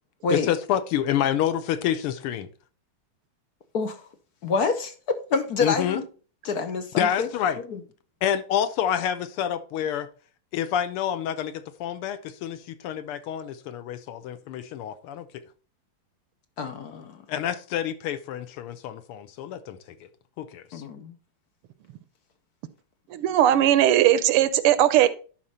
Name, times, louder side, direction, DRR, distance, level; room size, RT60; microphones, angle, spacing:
voice 1, 0.3-2.5 5.6-6.0 7.0-7.6 8.2-10.1 10.5-15.3 17.3-19.8 20.4-20.8, left 10 dB, 85° left, 1.7 m, -28 dB
voice 2, 4.4-6.0 6.4-7.3 7.7-7.8 16.6-17.2 20.7-21.1, left 4 dB, 60° left, 1.1 m, -27 dB
voice 3, 23.1-25.1, right 12 dB, 90° right, 1.6 m, -19 dB
11.0 x 4.4 x 4.1 m
omnidirectional pair, 2.4 m